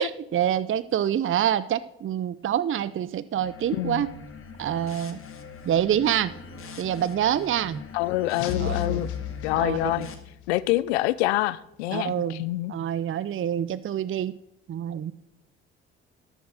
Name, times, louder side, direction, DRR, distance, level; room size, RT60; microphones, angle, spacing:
voice 1, 0.0-4.1 4.6-5.2 5.6-6.3 6.8-7.8 8.6-9.1 9.5-10.1 11.9-12.4 12.7-14.3 14.7-15.1, right 10 dB, 40° right, 0.7 m, -26 dB
sound 1, 3.3-10.1, left 4 dB, 40° left, 2.1 m, -43 dB
voice 2, 3.7-4.1 7.9-9.1 9.4-10.1 10.5-12.7, left 17 dB, 80° left, 0.6 m, -26 dB
sound 2, 8.4-10.3, left 10 dB, 65° left, 1.4 m, -32 dB
12.5 x 7.3 x 6.5 m
hypercardioid pair, 50°, 32 cm